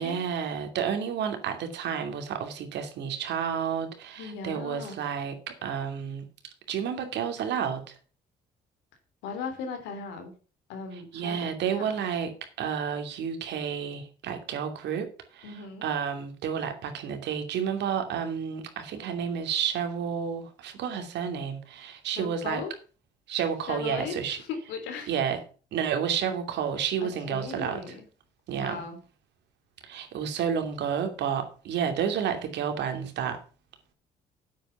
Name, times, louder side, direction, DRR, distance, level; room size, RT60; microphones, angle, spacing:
voice 1, 0.0-6.2 6.7-8.0 10.9-22.6 23.3-24.4 25.1-25.4 25.7-27.8 28.5-28.8 29.8-33.4, right 7 dB, 75° right, 6 dB, 2.7 m, -31 dB
voice 2, 4.2-5.0 9.2-10.3 10.7-11.9 15.4-15.9 22.1-22.7 23.7-25.1 27.0-28.0 28.5-29.0, left 5 dB, 90° left, 6 dB, 3.2 m, -37 dB
9.0 x 8.3 x 5.6 m, 0.37 s
supercardioid pair, 80°, 18 cm